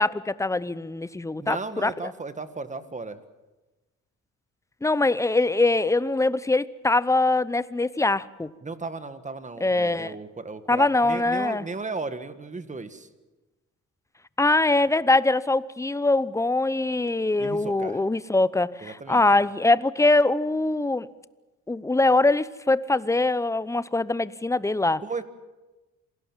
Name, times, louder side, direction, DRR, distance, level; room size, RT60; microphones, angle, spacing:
voice 1, 0.0-2.1 4.8-8.5 9.6-10.1 10.7-11.6 14.4-21.1 21.7-25.0, left 2 dB, 10° left, 17 dB, 0.7 m, -23 dB
voice 2, 1.4-3.2 8.6-13.1 17.4-18.0 18.8-19.2 25.0-25.2, right 3 dB, 25° right, 11 dB, 1.8 m, -35 dB
27.0 x 17.5 x 7.4 m, 1.1 s
cardioid pair, 90°, 30 cm